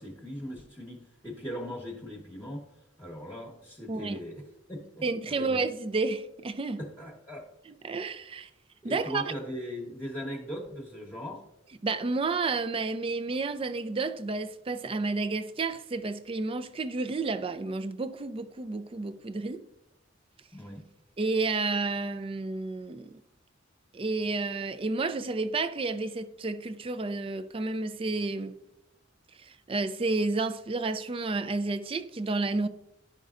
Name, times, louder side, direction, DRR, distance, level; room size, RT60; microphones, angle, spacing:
voice 1, 0.0-2.7 3.0-5.6 6.8-7.4 8.8-11.4 20.5-20.8, equal, 10° left, 1.1 m, -39 dB
voice 2, 3.9-4.2 5.0-6.8 7.8-8.5 8.8-9.2 11.8-19.6 21.2-23.2 23.9-28.5 29.4-32.7, right 3 dB, 30° right, 0.4 m, -31 dB
12.0 x 5.4 x 2.5 m
head